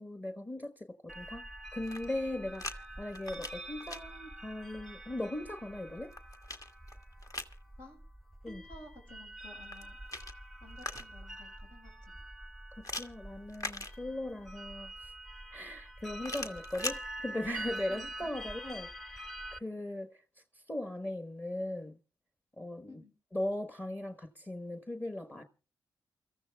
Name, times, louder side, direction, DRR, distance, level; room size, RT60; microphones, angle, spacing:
voice 1, 0.0-1.4 1.7-6.1 8.4-8.6 13.0-15.1 15.5-20.2 20.5-22.0 22.6-23.0 23.3-25.4, left 1 dB, 20° left, 1.3 m, -39 dB
sound 1, 1.1-19.6, right 1 dB, ahead, 0.9 m, -46 dB
sound 2, 1.7-2.8 3.1-4.0 5.7-7.6 9.6-11.3 12.8-14.4 16.2-17.0, left 2 dB, 40° left, 1.5 m, -42 dB
voice 2, 8.5-10.0 10.6-12.2 17.9-18.1 22.9-23.1, left 1 dB, 75° left, 5.4 m, -53 dB
28.5 x 14.0 x 2.3 m
hypercardioid pair, 40°, 9 cm